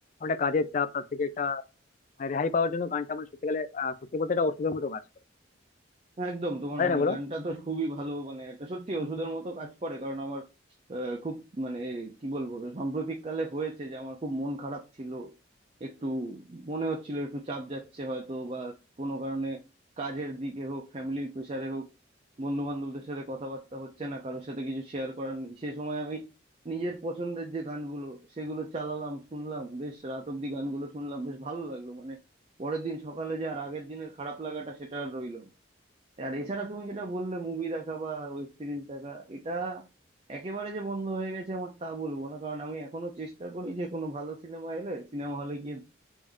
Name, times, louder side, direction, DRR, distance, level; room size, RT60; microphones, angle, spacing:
voice 1, 0.2-1.6 2.2-5.0 6.8-7.2, left 4 dB, 40° left, 0.3 m, -28 dB
voice 2, 6.2-10.5 10.9-15.3 15.8-19.6 20.0-21.9 22.4-26.3 26.6-32.2 32.6-35.5 36.2-39.9 40.3-45.8, right 2 dB, 30° right, 0.5 m, -35 dB
3.5 x 2.6 x 3.4 m
head